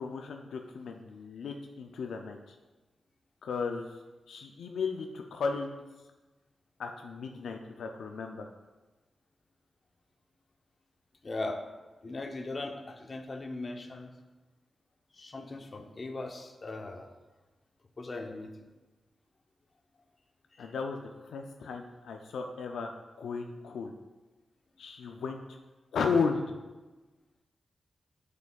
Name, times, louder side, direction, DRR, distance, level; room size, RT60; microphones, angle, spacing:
voice 1, 0.0-2.6 3.4-4.0 4.3-5.8 6.8-8.5 20.6-21.0 21.2-23.9 24.8-25.6 25.9-26.6, left 5 dB, 85° left, 3 dB, 0.3 m, -34 dB
voice 2, 11.2-11.6 12.0-14.1 15.1-17.1 18.0-18.5 20.6-20.7, left 2 dB, 45° left, 5 dB, 0.7 m, -39 dB
8.0 x 5.2 x 2.3 m, 1.2 s
cardioid pair, 50°, 0 cm